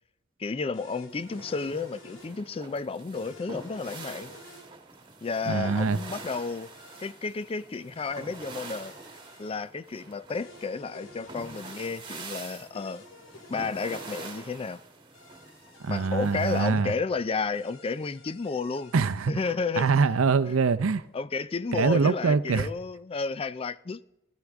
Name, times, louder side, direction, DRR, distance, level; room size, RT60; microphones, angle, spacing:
voice 1, 0.4-4.3 5.2-6.7 7.0-8.9 9.4-13.0 13.5-14.8 15.9-18.9 19.3-19.9 20.5-20.6 21.1-24.0, left 4 dB, 25° left, 0.4 m, -32 dB
sound 1, 0.7-2.3 3.1-4.7 5.5-7.1 7.9-9.5 10.3-11.9 12.7-14.3 15.1-16.7 17.5-19.1, left 2 dB, 65° left, 2.2 m, -53 dB
sound 2, 1.1-16.6, right 3 dB, 25° right, 1.6 m, -45 dB
voice 2, 5.5-6.0 15.8-16.9 18.9-19.3 19.8-21.0 21.7-22.7, right 4 dB, 75° right, 0.6 m, -24 dB
16.5 x 12.5 x 3.6 m
head